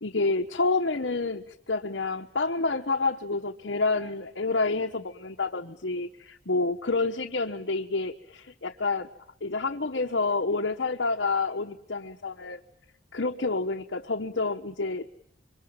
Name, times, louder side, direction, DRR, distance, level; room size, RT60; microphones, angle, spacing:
voice 1, 0.0-9.1 9.4-12.6 13.1-15.1, left 3 dB, 70° left, 3 dB, 1.2 m, -28 dB
27.0 x 24.5 x 8.9 m, 0.78 s
head